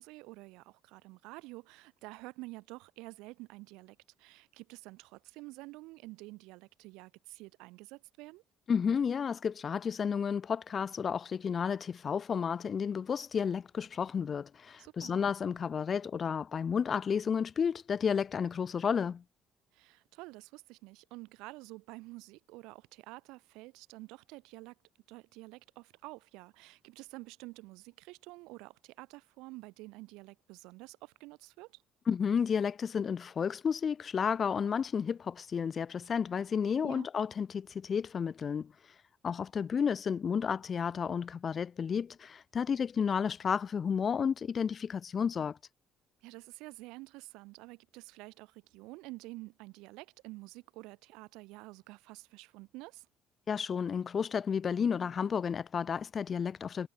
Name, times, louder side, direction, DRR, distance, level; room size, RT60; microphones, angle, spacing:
voice 1, 0.0-8.4 14.8-15.2 19.7-24.7 25.1-31.8 36.8-37.1 46.2-53.1, right 22 dB, 85° right, 7.3 m, -49 dB
voice 2, 8.7-19.2 32.1-38.7 39.2-45.6 53.5-56.9, left 7 dB, 45° left, 2.0 m, -32 dB
supercardioid pair, 70°, 0 cm